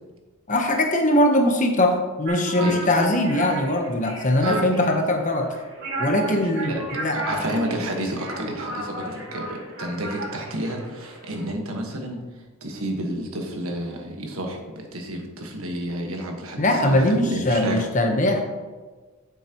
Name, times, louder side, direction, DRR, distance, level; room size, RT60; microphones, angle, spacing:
voice 1, 0.5-5.5 6.0-7.2 16.6-18.4, left 1 dB, 35° left, 3 dB, 1.0 m, -21 dB
sound 1, 2.2-11.4, right 2 dB, 50° right, 2.5 m, -34 dB
voice 2, 6.2-6.8 7.1-12.2 12.6-17.9, right 1 dB, 70° right, 2 dB, 1.4 m, -30 dB
9.7 x 7.2 x 3.0 m, 1.3 s
head